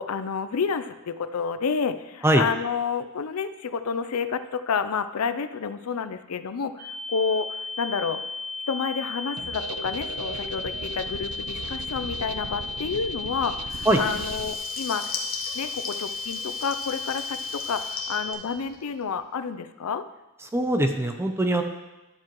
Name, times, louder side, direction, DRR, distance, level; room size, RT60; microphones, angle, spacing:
voice 1, 0.0-8.2 8.7-15.0 15.5-20.0, left 6 dB, 80° left, 11 dB, 0.5 m, -29 dB
sound 1, 6.8-18.3, left 3 dB, 40° right, 1.3 m, -35 dB
sound 2, 9.4-14.6, right 4 dB, 85° right, 0.6 m, -38 dB
Water tap faucet / Liquid, 13.6-19.1, left 5 dB, 40° left, 1.1 m, -38 dB
voice 2, 20.5-21.6, right 1 dB, 10° right, 5 dB, 0.6 m, -21 dB
11.5 x 7.5 x 3.0 m, 1.0 s
head